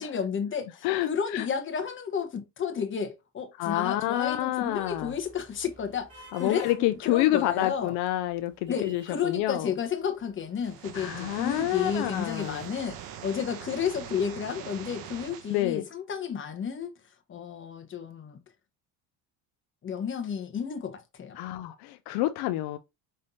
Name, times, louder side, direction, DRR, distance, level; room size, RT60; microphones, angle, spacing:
voice 1, 0.0-7.9 8.7-16.9 17.3-18.4 19.8-21.4, left 7 dB, 30° left, 1.1 m, -32 dB
voice 2, 0.8-1.5 3.6-5.1 6.3-9.7 10.9-12.6 15.5-15.8 21.4-22.8, left 15 dB, 70° left, 0.5 m, -28 dB
sound 1, 4.0-14.3, equal, 35° right, 3.1 m, -55 dB
high ride, 10.6-15.6, right 9 dB, 60° right, 1.0 m, -42 dB
5.5 x 3.3 x 2.7 m
cardioid pair, 115°, 40 cm